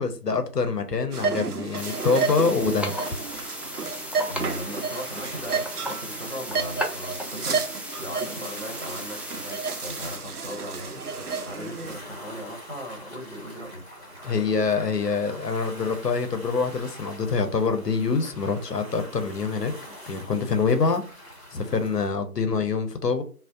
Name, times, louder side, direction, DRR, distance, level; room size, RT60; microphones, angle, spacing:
voice 1, 0.0-2.9 14.2-19.7 20.1-21.0 21.5-23.2, left 4 dB, 90° left, 0.7 m, -25 dB
sound 1, 1.1-12.0, right 5 dB, 75° right, 0.5 m, -32 dB
sound 2, 1.7-10.2, equal, 5° right, 0.3 m, -36 dB
sound 3, 2.2-22.1, equal, 40° left, 1.0 m, -45 dB
voice 2, 4.3-14.0, equal, 50° right, 0.8 m, -38 dB
2.5 x 2.0 x 2.4 m
figure-of-eight pair, 180°, 46 cm